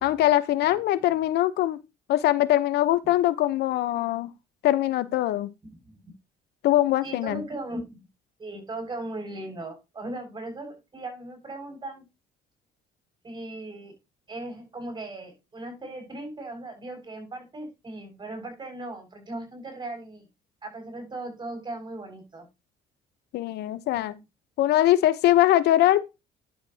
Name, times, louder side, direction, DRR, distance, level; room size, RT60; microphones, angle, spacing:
voice 1, 0.0-1.8 2.1-4.3 4.6-5.5 6.6-7.4 23.3-24.2 24.6-26.0, left 14 dB, 75° left, 0.9 m, -22 dB
voice 2, 7.0-8.1 8.4-12.0 13.2-13.9 14.3-20.3 20.6-22.5, right 2 dB, 25° right, 6.4 m, -38 dB
10.5 x 7.4 x 2.8 m
cardioid pair, 110°, 17 cm